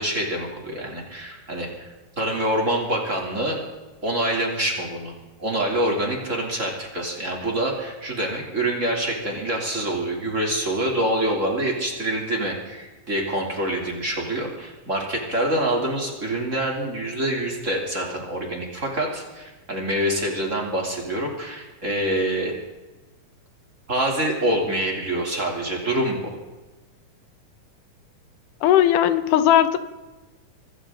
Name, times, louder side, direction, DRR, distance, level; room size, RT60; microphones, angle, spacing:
voice 1, 0.0-1.9 2.2-3.6 4.0-5.1 5.4-22.5 23.9-26.3, right 1 dB, 25° right, -1 dB, 3.3 m, -26 dB
voice 2, 28.6-29.8, left 11 dB, 85° left, 12 dB, 2.4 m, -17 dB
24.5 x 14.5 x 3.9 m, 1.2 s
omnidirectional pair, 3.6 m